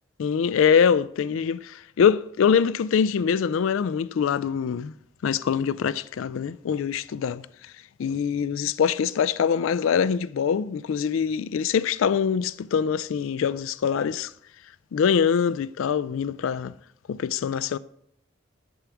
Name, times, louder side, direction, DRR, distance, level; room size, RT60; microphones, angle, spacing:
voice 1, 0.2-4.9 5.2-7.7 8.0-14.3 14.9-16.7 17.1-17.8, left 7 dB, 75° left, 0.3 m, -24 dB
11.0 x 4.8 x 7.1 m
head